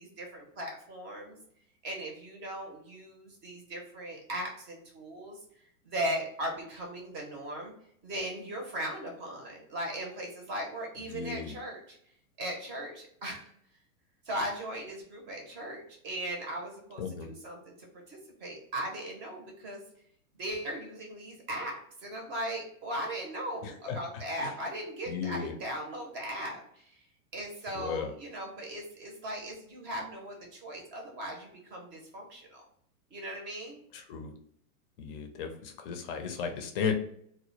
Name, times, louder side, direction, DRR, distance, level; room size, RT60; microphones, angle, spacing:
voice 1, 0.0-1.4 1.8-5.4 5.8-7.7 8.0-11.8 12.4-13.5 14.3-19.8 20.4-27.0 27.3-32.6 33.1-33.8, right 1 dB, 25° right, 1 dB, 0.6 m, -38 dB
voice 2, 11.1-11.6 17.0-17.3 23.6-24.0 24.4-24.5 25.1-25.6 27.7-28.1 33.9-34.3 35.0-36.9, left 6 dB, 40° left, 5 dB, 0.5 m, -35 dB
2.1 x 2.0 x 3.0 m, 0.67 s
hypercardioid pair, 135°, 44 cm